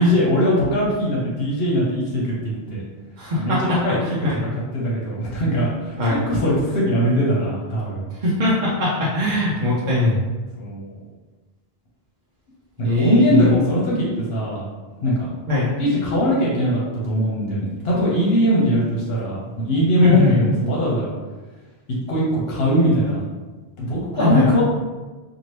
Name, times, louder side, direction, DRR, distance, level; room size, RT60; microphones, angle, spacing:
voice 1, 0.0-2.8 3.4-8.1 10.6-11.0 12.8-14.6 15.0-15.3 15.8-21.1 22.1-23.2 23.8-24.6, equal, 70° left, -5 dB, 1.0 m, -21 dB
voice 2, 3.2-3.8 4.0-4.4 6.0-6.2 8.2-10.2 12.8-13.5 15.5-15.7 20.0-20.4 24.2-24.5, left 2 dB, 55° right, -7 dB, 0.7 m, -20 dB
2.8 x 2.5 x 3.2 m, 1.3 s
omnidirectional pair, 1.1 m